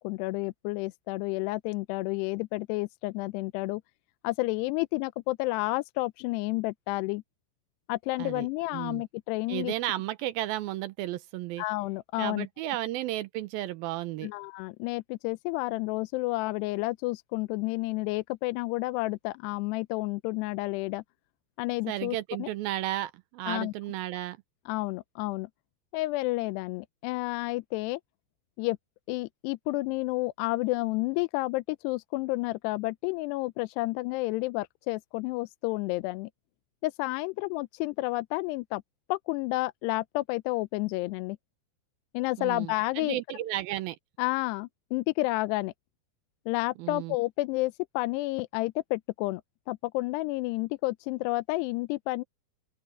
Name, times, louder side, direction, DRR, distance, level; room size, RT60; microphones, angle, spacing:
voice 1, 0.0-3.8 4.2-7.2 7.9-9.7 11.6-12.5 14.2-21.0 21.6-22.5 23.5-23.7 24.7-25.5 25.9-28.0 28.6-28.8 29.1-36.3 36.8-38.8 39.1-41.4 42.1-43.2 44.2-45.7 46.5-49.4 49.7-52.2, left 21 dB, 85° left, 2.6 m, -30 dB
voice 2, 8.7-9.0 9.5-11.6 12.2-14.3 21.9-24.4 42.4-44.0 46.8-47.2, right 15 dB, 85° right, 2.2 m, -33 dB
open air
omnidirectional pair, 5.0 m